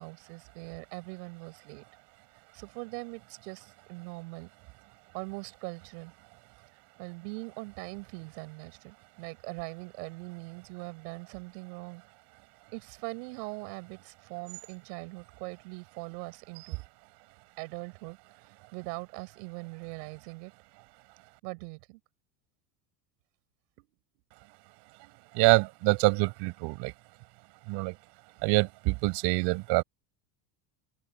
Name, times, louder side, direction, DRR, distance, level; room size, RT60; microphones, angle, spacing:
voice 1, 0.0-1.8 2.5-4.5 5.1-6.1 7.0-12.0 12.7-16.8 17.6-20.5 21.4-22.0 23.8-23.9, right 28 dB, 80° right, 7.1 m, -41 dB
voice 2, 25.3-26.9 27.7-27.9 28.4-29.8, right 26 dB, 60° right, 6.7 m, -25 dB
open air
cardioid pair, 155°, 47 cm